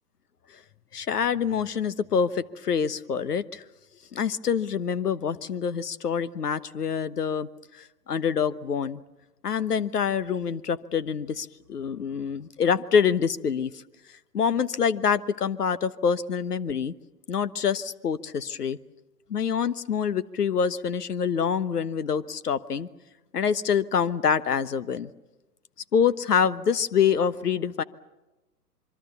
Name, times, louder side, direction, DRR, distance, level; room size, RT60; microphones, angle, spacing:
voice 1, 0.9-3.6 4.1-7.5 7.8-9.0 9.4-13.8 14.3-16.9 17.3-18.8 19.3-22.9 23.3-25.1 25.9-27.8, left 7 dB, 70° left, 15 dB, 1.2 m, -26 dB
26.5 x 23.0 x 7.0 m, 1.1 s
figure-of-eight pair, 125°, 47 cm